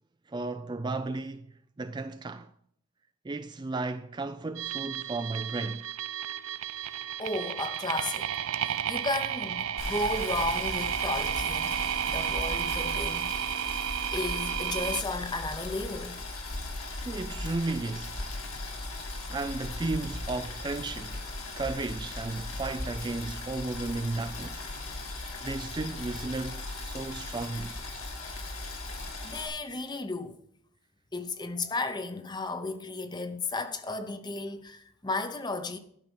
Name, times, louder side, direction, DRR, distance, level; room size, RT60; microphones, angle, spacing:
voice 1, 0.3-2.5 3.2-5.9 17.0-18.2 19.3-21.3 21.6-24.7 25.4-27.8, right 3 dB, 20° right, 0.3 m, -34 dB
sound 1, 4.6-15.0, right 10 dB, 70° right, 0.6 m, -32 dB
voice 2, 7.2-8.3 8.6-13.6 14.1-16.2 29.2-30.4 31.1-35.8, left 2 dB, 20° left, 0.8 m, -34 dB
Boiling, 9.8-29.5, left 2 dB, 60° left, 2.4 m, -38 dB
12.0 x 5.9 x 7.0 m
head